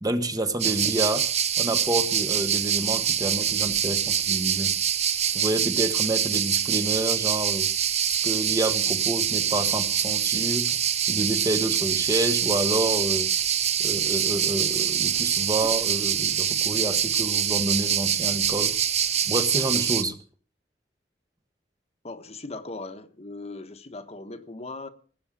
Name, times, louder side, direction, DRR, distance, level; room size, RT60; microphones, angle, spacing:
voice 1, 0.0-1.3 1.6-4.8 5.2-7.7 8.1-10.8 11.1-13.3 13.8-18.8 19.3-20.2, right 1 dB, 20° right, 1.3 m, -28 dB
sound 1, 0.6-20.0, right 9 dB, 40° right, 0.9 m, -25 dB
voice 2, 22.0-24.9, left 2 dB, 40° left, 1.3 m, -38 dB
18.5 x 7.9 x 7.6 m
head